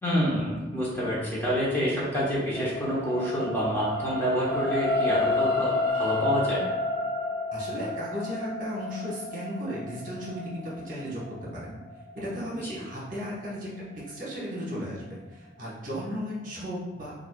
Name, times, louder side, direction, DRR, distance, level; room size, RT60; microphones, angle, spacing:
voice 1, 0.0-6.7 12.6-12.7, equal, 15° left, -7 dB, 0.9 m, -27 dB
sound 1, 1.9-14.2 14.8-14.9, left 2 dB, 75° left, 1.0 m, -31 dB
voice 2, 7.5-11.8 12.1-13.7 14.1-17.2, equal, 50° right, -6 dB, 1.1 m, -35 dB
5.3 x 2.4 x 2.2 m, 1.2 s
head